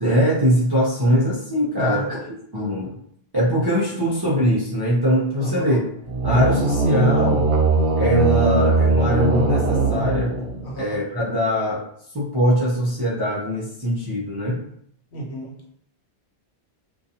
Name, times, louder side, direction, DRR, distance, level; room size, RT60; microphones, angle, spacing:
voice 1, 0.0-2.2 2.5-3.0 3.3-5.8 6.2-7.5 8.0-11.8 12.1-14.6, equal, 40° right, -7 dB, 0.3 m, -22 dB
voice 2, 1.8-2.3 5.4-5.7 10.6-11.0 15.1-15.5, right 1 dB, 80° left, -1 dB, 1.0 m, -32 dB
sound 1, 6.1-10.8, right 3 dB, 65° right, 0.7 m, -20 dB
2.5 x 2.2 x 2.7 m, 0.67 s
omnidirectional pair, 1.1 m